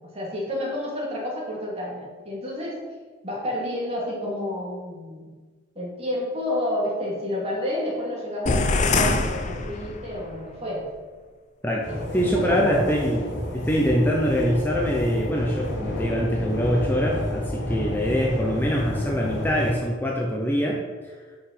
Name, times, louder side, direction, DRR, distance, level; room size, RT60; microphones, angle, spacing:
voice 1, 0.1-2.8 3.2-5.3 5.8-10.8 11.9-12.0 12.3-12.9, left 1 dB, 30° right, -4 dB, 2.6 m, -30 dB
sound 1, 8.5-10.3, left 3 dB, 35° left, 0.6 m, -24 dB
sound 2, 11.8-19.7, left 1 dB, 60° left, 3.2 m, -30 dB
voice 2, 12.1-20.8 21.0-21.1, equal, 10° left, -2 dB, 0.8 m, -24 dB
8.7 x 6.1 x 5.8 m, 1.5 s
head